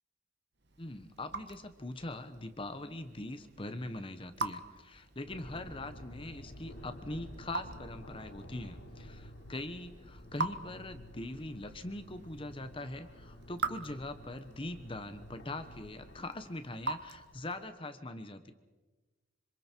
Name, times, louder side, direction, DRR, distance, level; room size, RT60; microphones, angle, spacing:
Raindrop / Drip, 0.6-17.8, right 3 dB, 55° right, 1.6 m, -44 dB
voice 1, 0.8-18.5, left 1 dB, 25° left, 9 dB, 1.1 m, -42 dB
sound 1, 5.3-16.2, equal, 80° left, 3.2 m, -51 dB
26.5 x 26.5 x 4.6 m, 1.2 s
head